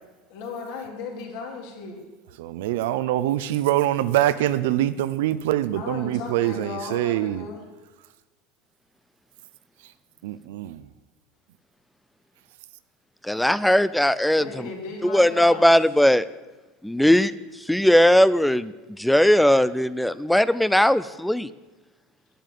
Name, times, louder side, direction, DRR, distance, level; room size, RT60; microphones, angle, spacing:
voice 1, 0.3-2.1 5.7-7.6 14.3-15.7, left 4 dB, 60° left, 0 dB, 3.6 m, -36 dB
voice 2, 2.4-7.5 9.8-9.9 10.2-10.9, right 13 dB, 80° right, 13 dB, 0.6 m, -24 dB
voice 3, 13.2-14.7 15.0-16.2 16.8-17.3 17.7-21.5, left 1 dB, ahead, 17 dB, 0.3 m, -19 dB
12.5 x 10.5 x 7.6 m, 1.2 s
cardioid pair, 175°, 0 cm